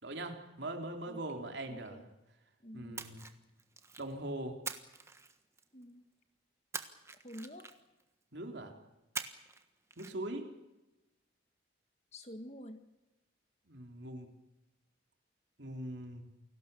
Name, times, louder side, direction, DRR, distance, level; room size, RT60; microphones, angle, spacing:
voice 1, 0.0-2.1 2.7-3.2 4.0-4.6 8.3-8.7 10.0-10.5 13.7-14.3 15.6-16.3, right 1 dB, 60° right, 4 dB, 3.5 m, -41 dB
voice 2, 1.6-2.1 2.6-3.0 5.7-6.0 7.2-7.7 12.1-12.8, equal, 35° left, 8 dB, 1.8 m, -48 dB
Splash splatter, 2.9-4.1 4.6-5.8 6.7-8.0 9.1-9.6 9.9-10.1, right 4 dB, 15° right, 1.4 m, -44 dB
29.0 x 19.0 x 7.0 m, 1.0 s
head